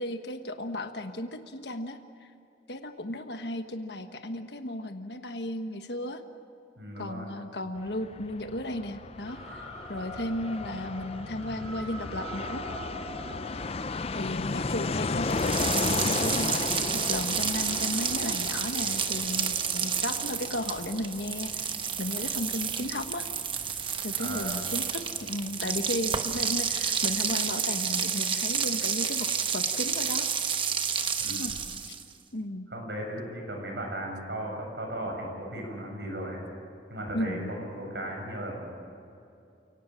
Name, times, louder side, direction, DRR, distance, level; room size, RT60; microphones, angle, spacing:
voice 1, 0.0-2.0 2.7-6.2 7.0-12.6 14.1-21.7 22.0-23.3 24.0-30.3 31.3-31.5 31.8-31.9 32.3-32.7 37.1-37.5, left 1 dB, 70° left, 7 dB, 1.3 m, -35 dB
voice 2, 6.8-7.3 24.2-24.6 31.2-31.6 32.7-36.4 36.9-38.7, right 1 dB, 70° right, 0 dB, 7.6 m, -36 dB
Fixed-wing aircraft airplane, 7.8-26.1 26.4-26.5 26.7-27.4, left 3 dB, 30° left, 0.4 m, -35 dB
sound 1, 9.3-14.3, right 1 dB, ahead, 4.9 m, -43 dB
sound 2, 15.3-32.1, right 7 dB, 25° right, 1.1 m, -30 dB
29.0 x 18.0 x 7.5 m, 2.6 s
head